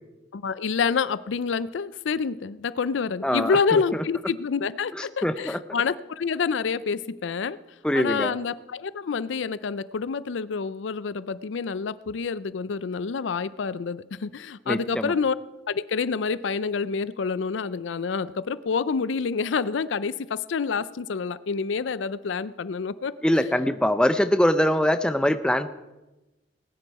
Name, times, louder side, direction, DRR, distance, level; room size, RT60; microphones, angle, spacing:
voice 1, 0.3-7.6 7.9-15.4 15.7-23.4, left 5 dB, 85° left, 17 dB, 0.5 m, -28 dB
voice 2, 3.2-3.8 5.2-5.6 7.8-8.3 14.7-15.1 23.2-25.7, left 1 dB, 5° left, 10 dB, 0.5 m, -23 dB
19.0 x 9.9 x 4.7 m, 1.1 s
head